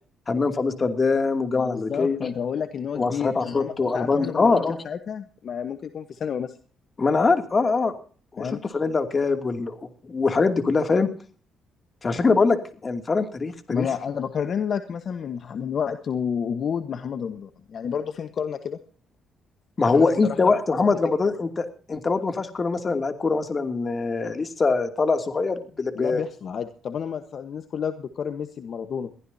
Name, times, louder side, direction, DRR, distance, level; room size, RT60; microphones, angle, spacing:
voice 1, 0.3-2.2 3.0-4.8 7.0-7.9 8.3-11.1 12.0-13.9 19.8-26.2, left 4 dB, 35° left, 7 dB, 2.6 m, -23 dB
voice 2, 1.5-6.5 8.4-8.6 13.7-18.8 19.9-20.5 25.9-29.1, left 7 dB, 55° left, 9 dB, 1.3 m, -30 dB
22.5 x 15.0 x 2.8 m, 0.41 s
cardioid pair, 90°, 0 cm